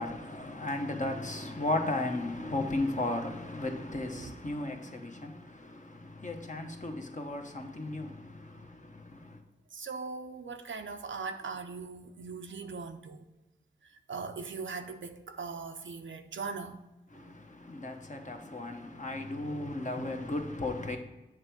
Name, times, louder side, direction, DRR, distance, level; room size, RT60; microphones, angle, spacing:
voice 1, 0.0-9.4 17.1-21.0, left 2 dB, 40° left, 1.0 m, -35 dB
voice 2, 9.7-13.3 13.8-16.8, right 4 dB, 90° right, 0.6 m, -40 dB
7.5 x 3.5 x 6.2 m
wide cardioid pair, 45°, 19 cm